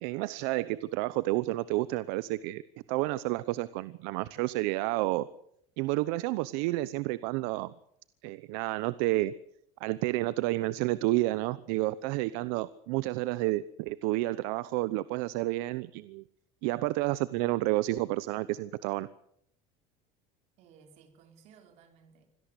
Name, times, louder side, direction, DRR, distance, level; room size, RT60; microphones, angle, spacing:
voice 1, 0.0-2.6 2.9-5.3 5.8-7.7 8.2-9.3 9.8-16.2 16.6-19.1, right 18 dB, 70° right, 17 dB, 0.9 m, -30 dB
voice 2, 20.6-22.3, right 6 dB, 50° right, 6 dB, 4.8 m, -58 dB
25.5 x 17.5 x 8.2 m, 0.71 s
cardioid pair, 155°, 14 cm